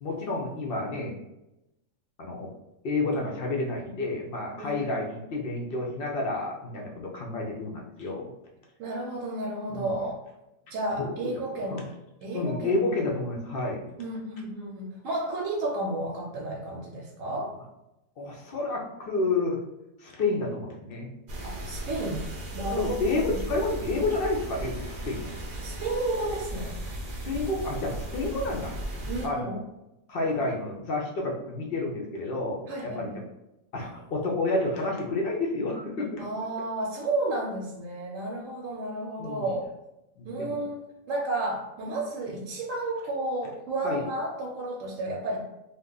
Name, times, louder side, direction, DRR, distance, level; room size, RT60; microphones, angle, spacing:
voice 1, 0.0-1.2 2.2-2.5 2.8-8.3 9.7-9.9 11.0-11.3 11.7-11.8 12.3-13.9 17.3-17.5 18.2-19.6 20.0-21.1 22.8-24.8 25.1-25.3 27.2-28.8 29.2-29.6 30.1-33.1 33.7-36.3 39.2-39.5 40.2-40.6 43.8-44.1, left 2 dB, 60° left, -1 dB, 0.6 m, -30 dB
voice 2, 4.6-4.9 8.8-10.2 10.7-11.9 12.2-13.0 14.0-17.5 21.4-22.3 22.5-23.0 23.3-23.4 25.6-26.8 29.1-29.5 32.7-33.2 36.2-39.7 40.2-40.8 41.1-45.5, right 2 dB, 70° right, -1 dB, 0.9 m, -32 dB
sound 1, 21.3-29.3, right 1 dB, 55° right, 0.6 m, -36 dB
2.4 x 2.3 x 3.6 m, 0.91 s
omnidirectional pair, 1.5 m